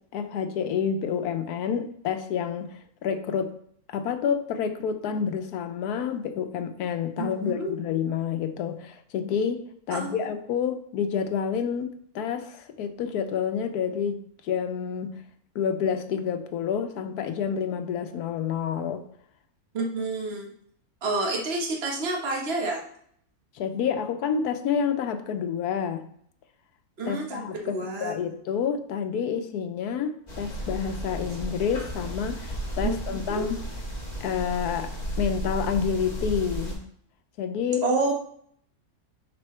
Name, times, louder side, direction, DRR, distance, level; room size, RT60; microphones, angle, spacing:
voice 1, 0.1-3.5 3.9-15.2 15.5-19.0 23.5-26.1 27.1-33.6 34.2-34.9 35.2-36.8 37.4-37.8, left 7 dB, 85° left, 8 dB, 1.2 m, -29 dB
voice 2, 7.2-7.7 9.9-10.1 19.7-20.5 21.0-22.8 27.0-28.1 32.8-33.0 33.4-33.5 37.8-38.1, right 3 dB, 45° right, -1 dB, 1.5 m, -28 dB
sound 1, 30.3-36.8, right 1 dB, 30° left, 1.8 m, -33 dB
7.2 x 6.1 x 3.3 m, 0.64 s
omnidirectional pair, 1.6 m